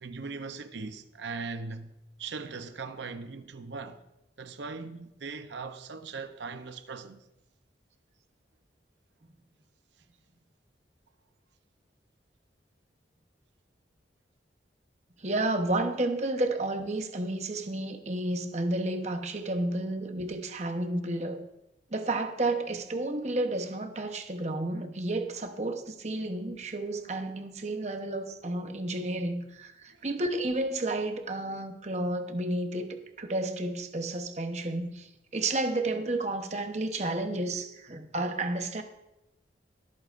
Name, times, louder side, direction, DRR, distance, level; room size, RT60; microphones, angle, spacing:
voice 1, 0.0-4.0 4.4-7.2, right 4 dB, 80° right, 0.7 m, -39 dB
voice 2, 15.2-21.4 21.9-38.8, right 2 dB, 40° right, 0.9 m, -31 dB
23.5 x 8.7 x 2.5 m
head